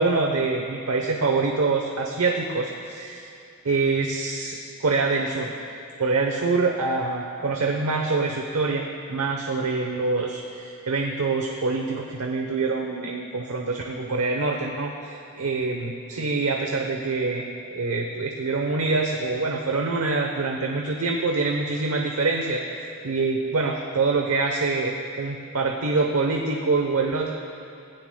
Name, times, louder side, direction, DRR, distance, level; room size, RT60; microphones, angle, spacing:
voice 1, 0.0-3.3 3.6-5.5 6.0-17.4 17.8-22.6 23.0-27.3, right 3 dB, 85° right, 2 dB, 0.9 m, -25 dB
19.0 x 15.5 x 2.3 m, 2.7 s
head